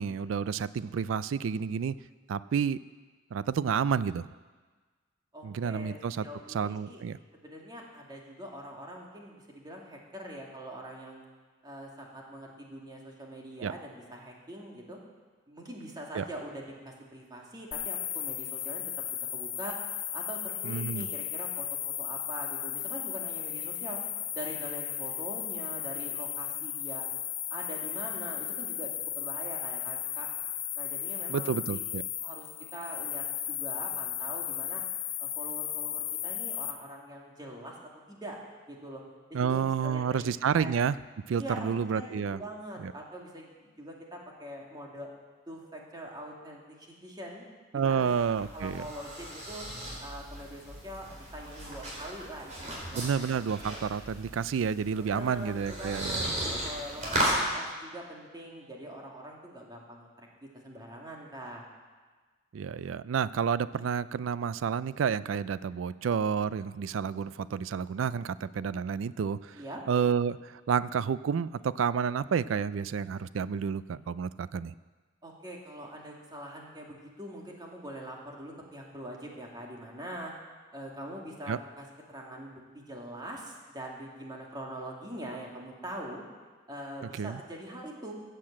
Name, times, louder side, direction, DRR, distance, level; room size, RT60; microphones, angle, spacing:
voice 1, 0.0-1.9 2.3-2.8 3.3-4.3 5.4-7.2 13.6-13.7 16.1-16.2 20.6-21.1 31.3-32.0 39.3-41.0 41.3-42.4 42.8-42.9 47.7-48.8 52.9-56.3 62.5-69.6 69.9-74.7 81.5-81.6 87.1-87.4, right 7 dB, 85° right, 17 dB, 0.4 m, -30 dB
voice 2, 5.3-7.0 7.3-11.2 11.6-15.0 15.5-18.8 19.3-19.8 20.1-24.0 24.3-27.0 27.5-30.3 30.8-31.8 32.2-32.5 32.7-34.8 35.2-38.4 38.7-39.0 39.3-40.3 40.6-40.7 41.3-45.1 45.5-47.4 47.7-48.1 48.5-49.7 50.0-53.1 55.0-60.3 60.5-61.7 69.5-69.8 75.2-80.3 80.7-86.2 86.7-88.1, right 1 dB, 20° right, -1 dB, 2.4 m, -43 dB
sound 1, 17.7-36.7, left 11 dB, 85° left, 1.5 m, -35 dB
sound 2, 47.8-57.4, right 1 dB, 40° right, 4.2 m, -36 dB
15.0 x 7.8 x 7.5 m, 1.4 s
head